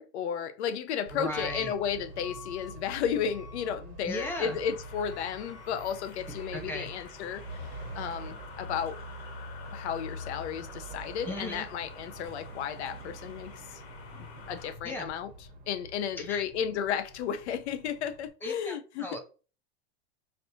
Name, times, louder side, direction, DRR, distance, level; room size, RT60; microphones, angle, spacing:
voice 1, 0.0-9.0 9.7-13.8 14.2-15.3 15.7-19.2, left 8 dB, 85° left, 0.7 m, -33 dB
voice 2, 1.1-1.7 4.0-4.6 6.5-6.9 11.3-11.7 14.8-15.1 16.2-16.4 18.4-19.2, left 1 dB, 5° left, 0.4 m, -36 dB
Truck / Alarm, 1.1-18.3, right 1 dB, 50° right, 1.2 m, -45 dB
sound 1, 4.2-14.8, left 6 dB, 60° left, 1.8 m, -49 dB
5.2 x 2.8 x 2.7 m
supercardioid pair, 155°, 33 cm